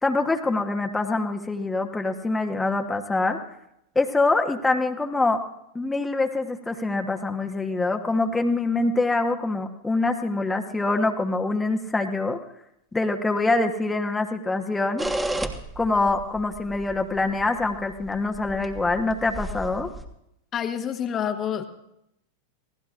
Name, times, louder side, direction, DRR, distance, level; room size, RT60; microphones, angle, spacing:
voice 1, 0.0-3.4 3.9-5.4 5.7-12.4 12.9-15.0 15.8-19.9, left 3 dB, 10° left, 4 dB, 1.2 m, -24 dB
sound 1, 15.0-20.1, right 1 dB, 10° right, 1.4 m, -33 dB
voice 2, 20.5-21.6, left 8 dB, 30° left, 6 dB, 1.3 m, -27 dB
27.5 x 17.5 x 2.5 m, 0.79 s
figure-of-eight pair, 90°, 0 cm